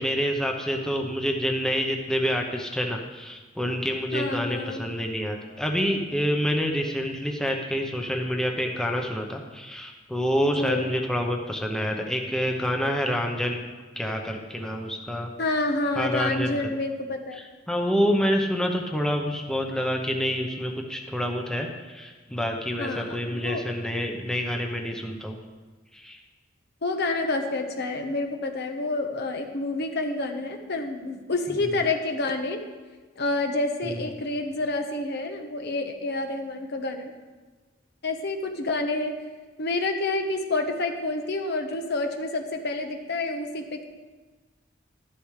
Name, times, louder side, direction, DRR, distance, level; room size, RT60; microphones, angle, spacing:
voice 1, 0.0-13.6 14.0-15.3 16.0-16.6 17.4-25.4 25.9-26.2 31.5-31.7 33.8-34.1, equal, 5° left, 2 dB, 0.8 m, -27 dB
voice 2, 4.1-4.9 10.6-10.9 15.4-17.4 22.8-23.6 26.8-32.6 33.2-37.1 38.0-39.2 39.6-43.8, left 2 dB, 60° left, 5 dB, 1.1 m, -28 dB
12.5 x 12.0 x 3.3 m, 1.3 s
head